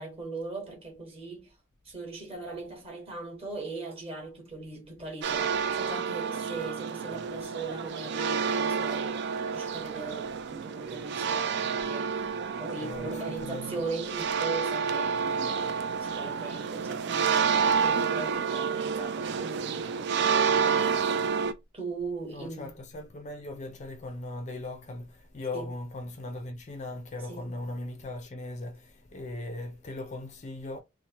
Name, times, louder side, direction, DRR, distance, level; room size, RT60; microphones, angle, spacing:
voice 1, 0.0-1.5 1.8-12.3 12.6-21.1 21.7-22.7 25.5-25.7 27.3-27.5, right 3 dB, 30° right, 1.2 m, -39 dB
sound 1, 5.2-21.5, right 6 dB, 60° right, 0.3 m, -29 dB
voice 2, 12.8-13.7 22.3-30.8, left 2 dB, 35° left, 0.4 m, -39 dB
2.9 x 2.0 x 2.8 m
head